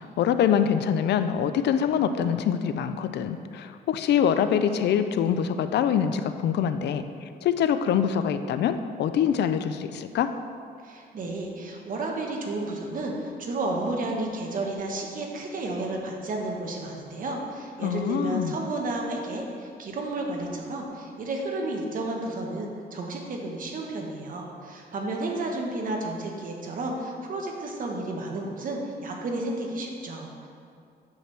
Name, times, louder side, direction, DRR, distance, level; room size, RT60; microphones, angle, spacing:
voice 1, 0.2-7.0 7.4-10.3 17.8-18.6, left 8 dB, 75° left, 10 dB, 0.4 m, -24 dB
voice 2, 10.8-30.5, right 2 dB, 50° right, 0 dB, 1.1 m, -32 dB
9.5 x 6.0 x 3.3 m, 2.4 s
cardioid pair, 130°, 18 cm